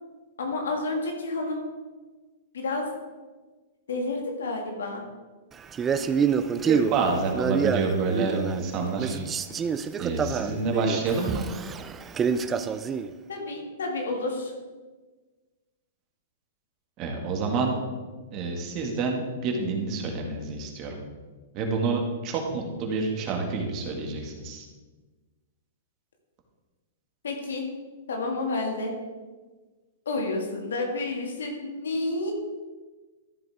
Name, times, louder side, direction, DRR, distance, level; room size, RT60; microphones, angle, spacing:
voice 1, 0.4-1.6 2.5-2.9 3.9-5.0 13.3-14.5 27.2-27.6 28.1-28.9 30.1-32.3, left 2 dB, 85° left, 1 dB, 2.3 m, -30 dB
Male speech man speaking, 5.7-8.7 9.0-13.1, right 6 dB, 20° right, 0.5 m, -27 dB
voice 2, 6.6-9.2 10.0-11.5 17.0-17.8 18.3-21.0 21.5-24.7, right 4 dB, 40° right, 2 dB, 2.1 m, -28 dB
13.5 x 7.7 x 3.7 m, 1.3 s
hypercardioid pair, 130°, 0 cm